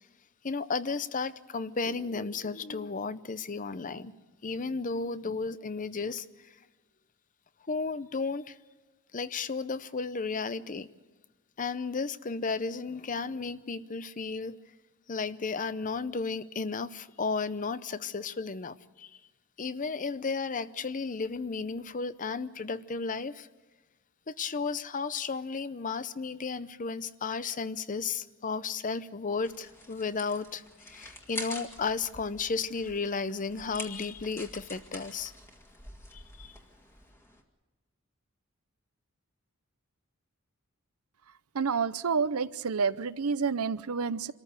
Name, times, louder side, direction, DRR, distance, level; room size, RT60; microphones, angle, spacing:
voice 1, 0.4-4.1 4.4-6.3 7.7-8.6 9.1-10.9 11.6-14.6 15.1-19.1 19.6-23.5 24.3-35.3 36.1-36.6, left 4 dB, 35° left, 0.6 m, -33 dB
sound 1, 29.4-37.4, left 1 dB, 10° left, 1.9 m, -46 dB
voice 2, 41.5-44.3, right 5 dB, 75° right, 0.7 m, -29 dB
26.0 x 14.0 x 8.1 m
head